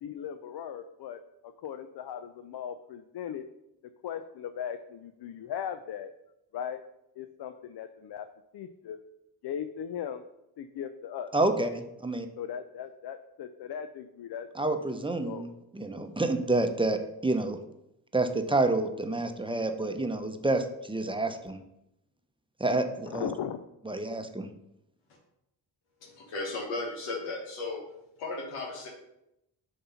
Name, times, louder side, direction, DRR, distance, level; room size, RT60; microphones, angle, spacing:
voice 1, 0.0-3.4 4.0-6.1 6.5-6.8 7.2-8.3 8.5-9.0 9.4-10.2 10.6-11.3 12.4-14.5 15.2-15.5 23.1-23.6, left 8 dB, 55° left, 9 dB, 0.6 m, -38 dB
voice 2, 11.3-12.3 14.5-15.5 15.7-17.6 18.1-21.6 22.6-23.3 23.9-24.5, right 2 dB, 10° right, 6 dB, 0.8 m, -28 dB
voice 3, 26.0-27.8 28.2-28.9, left 3 dB, 90° left, 0 dB, 1.1 m, -35 dB
6.6 x 2.9 x 5.6 m, 0.84 s
supercardioid pair, 45°, 48 cm